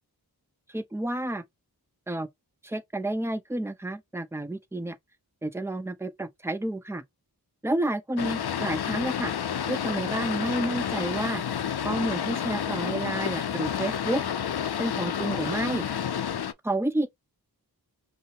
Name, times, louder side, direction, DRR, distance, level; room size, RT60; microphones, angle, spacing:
voice 1, 0.7-1.4 2.1-2.3 2.6-4.9 5.4-7.0 7.6-9.3 9.7-11.4 11.8-14.2 14.8-15.9 16.6-17.1, right 1 dB, 5° right, 0.8 m, -30 dB
Boat Water vehicle, 8.2-16.5, left 8 dB, 75° left, 0.6 m, -30 dB
5.4 x 2.2 x 3.2 m
wide cardioid pair, 50°, 39 cm